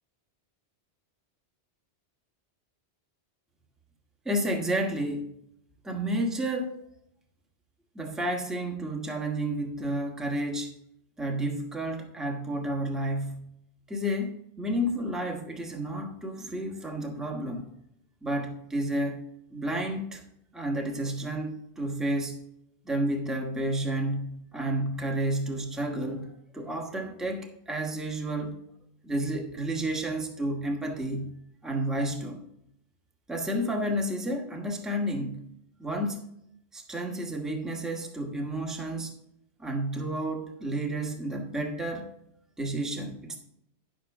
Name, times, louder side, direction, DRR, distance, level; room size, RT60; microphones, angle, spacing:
voice 1, 4.2-5.3 5.8-6.8 7.9-10.7 11.2-13.5 13.9-17.7 18.2-19.2 19.5-20.2 20.5-22.4 22.8-28.6 29.0-32.5 33.3-35.5 35.8-36.2 36.7-39.1 39.6-42.1 42.6-43.4, right 1 dB, ahead, 2 dB, 1.1 m, -31 dB
10.5 x 7.3 x 3.5 m, 0.75 s
omnidirectional pair, 1.1 m